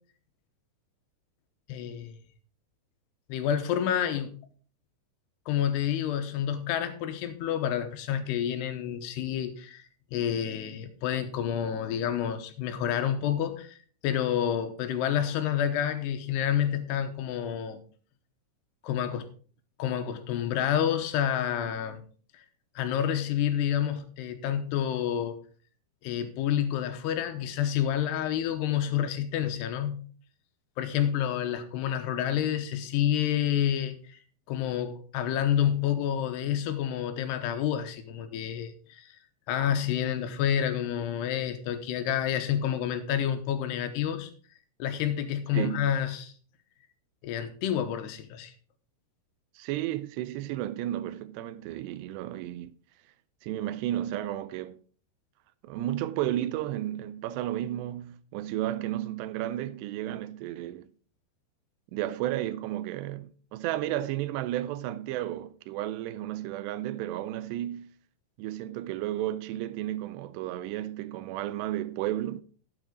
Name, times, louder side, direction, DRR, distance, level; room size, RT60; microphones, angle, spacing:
voice 1, 1.7-2.1 3.3-4.3 5.5-9.8 10.1-13.8 14.0-17.8 18.8-19.3 19.8-22.0 22.8-25.4 26.0-30.1 30.8-34.2 34.5-39.1 39.5-44.3 44.8-46.3 47.2-48.5, left 10 dB, 80° left, 3.0 m, -29 dB
voice 2, 45.5-45.9 49.6-52.7 53.4-54.8 55.6-60.9 61.9-67.9 68.4-72.4, right 13 dB, 85° right, 2.8 m, -33 dB
12.0 x 8.5 x 3.8 m
omnidirectional pair, 4.8 m